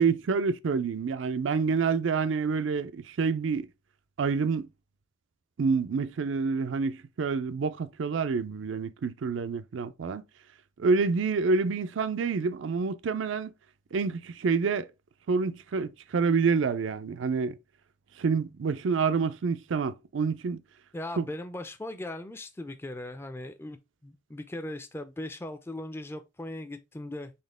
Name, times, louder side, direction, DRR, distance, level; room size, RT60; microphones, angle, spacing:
voice 1, 0.0-3.7 4.2-4.7 5.6-10.2 10.8-13.5 13.9-14.9 15.3-17.6 18.2-20.6 21.2-21.3, right 5 dB, 75° right, 0.4 m, -27 dB
voice 2, 20.9-27.3, left 1 dB, 10° left, 0.4 m, -39 dB
4.3 x 3.6 x 3.3 m
head